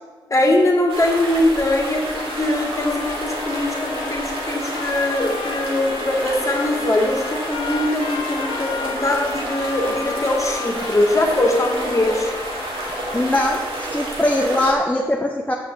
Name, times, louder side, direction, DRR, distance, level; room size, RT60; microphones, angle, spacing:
voice 1, 0.3-12.3, left 1 dB, 35° left, 1 dB, 2.2 m, -21 dB
sound 1, 0.9-14.7, right 1 dB, 75° right, 1.9 m, -30 dB
sound 2, 2.2-13.8, left 6 dB, 75° left, 0.7 m, -34 dB
voice 2, 13.1-15.5, left 1 dB, 15° left, -1 dB, 1.1 m, -21 dB
6.8 x 6.2 x 7.1 m, 1.5 s
supercardioid pair, 45°, 9 cm